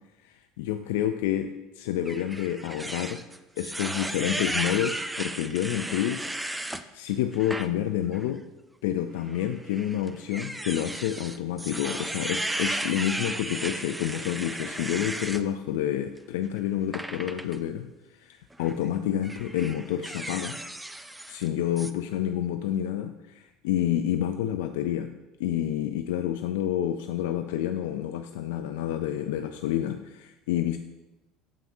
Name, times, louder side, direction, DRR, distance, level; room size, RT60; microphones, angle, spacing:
voice 1, 0.2-1.5 1.8-3.2 3.6-6.3 6.7-8.4 8.8-17.9 18.2-20.6 21.3-25.1 25.4-30.8, left 11 dB, 85° left, 7 dB, 0.3 m, -29 dB
sound 1, 2.1-6.8 7.3-7.7 8.1-8.3 9.3-15.4 16.9-17.6 18.5-18.8 19.2-21.5 21.8-21.9, right 1 dB, 5° right, 0.3 m, -34 dB
7.2 x 5.7 x 2.7 m, 0.99 s
supercardioid pair, 115°, 0 cm